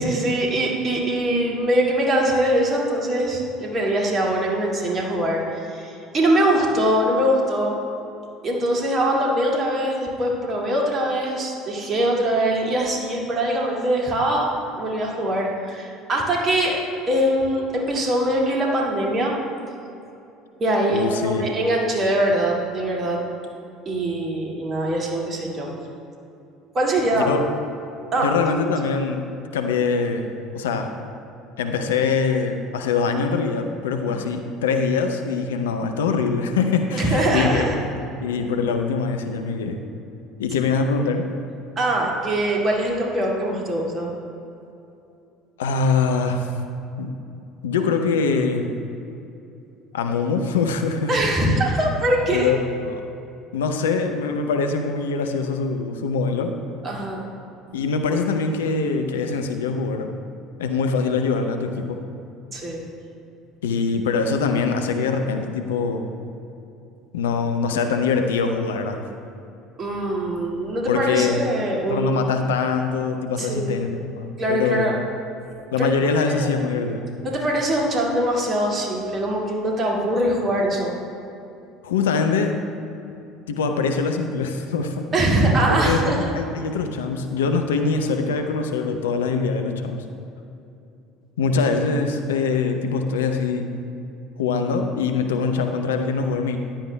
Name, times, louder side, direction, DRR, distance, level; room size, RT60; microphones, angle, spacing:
voice 1, 0.0-7.7 8.4-14.5 14.8-16.8 17.1-19.3 20.6-23.2 23.9-25.7 26.7-27.3 28.1-28.3 28.6-28.7 34.1-34.3 36.9-37.7 41.8-44.1 51.1-52.5 56.8-57.2 62.5-62.8 69.8-72.2 73.4-73.7 74.4-74.9 75.8-76.5 77.2-80.9 85.1-86.3, right 1 dB, 35° right, -2 dB, 2.2 m, -22 dB
voice 2, 20.9-21.5 27.3-27.6 28.2-29.3 29.5-30.9 31.6-39.8 40.4-41.2 45.6-46.5 47.0-47.1 47.6-48.7 49.9-51.1 52.3-53.0 53.5-56.6 57.7-60.1 60.6-62.0 63.6-66.0 67.1-69.0 70.9-71.4 71.9-74.9 75.7-77.1 81.8-82.6 83.5-85.1 85.7-90.0 91.4-93.7 94.4-96.6, left 4 dB, 75° left, 5 dB, 0.6 m, -23 dB
14.5 x 10.5 x 2.3 m, 2.7 s
figure-of-eight pair, 65°, 0 cm